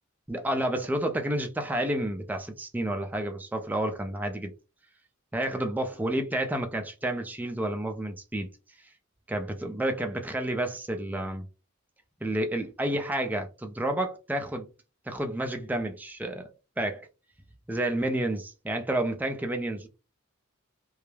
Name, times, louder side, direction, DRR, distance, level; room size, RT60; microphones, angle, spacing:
voice 1, 0.3-4.5 5.3-8.5 9.3-11.4 12.2-14.7 15.1-16.5 16.8-17.0 17.7-19.9, right 1 dB, 10° right, 0.3 m, -30 dB
2.3 x 2.0 x 3.1 m
head